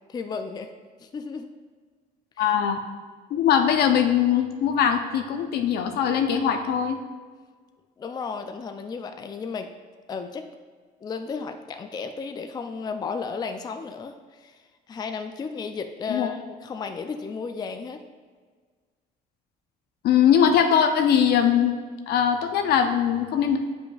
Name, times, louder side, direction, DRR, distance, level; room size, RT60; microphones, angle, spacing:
voice 1, 0.1-0.7 1.0-1.5 2.4-2.5 8.0-9.7 10.1-10.5 11.0-14.6 14.9-18.0, left 5 dB, 25° left, 6 dB, 0.4 m, -34 dB
voice 2, 2.4-2.8 3.3-7.0 16.1-16.3 20.0-21.7 22.1-23.6, left 8 dB, 70° left, 6 dB, 0.7 m, -21 dB
8.6 x 5.1 x 2.4 m, 1.6 s
cardioid pair, 110°, 17 cm